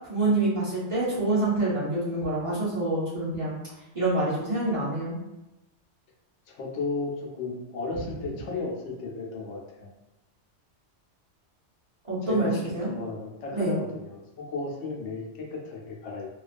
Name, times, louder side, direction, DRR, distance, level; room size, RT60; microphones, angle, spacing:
voice 1, 0.1-3.5 3.9-5.2 12.1-12.9 13.5-13.8, right 2 dB, 30° right, -10 dB, 0.8 m, -26 dB
voice 2, 6.5-9.9 12.2-16.3, left 3 dB, 85° left, -1 dB, 0.9 m, -34 dB
2.3 x 2.3 x 2.4 m, 0.97 s
omnidirectional pair, 1.2 m